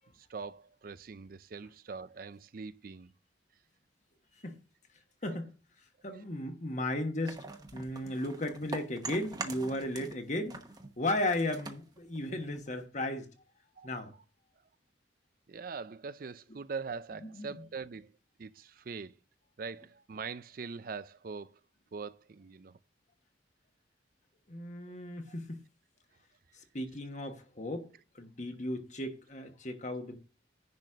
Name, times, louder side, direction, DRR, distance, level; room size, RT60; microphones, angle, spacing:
voice 1, 0.1-3.1 6.1-6.2 13.8-13.9 15.5-18.1 18.4-19.2 19.6-21.6 21.9-22.8, right 5 dB, 50° right, 0.4 m, -42 dB
voice 2, 5.2-5.5 6.0-7.4 7.7-10.6 11.0-13.3 13.8-14.1 17.2-17.5 24.5-25.6 26.7-27.9 28.1-30.2, left 1 dB, 40° left, 1.4 m, -35 dB
sound 1, 7.3-10.2 10.5-12.9, right 3 dB, 20° right, 1.1 m, -43 dB
10.5 x 4.2 x 6.3 m
head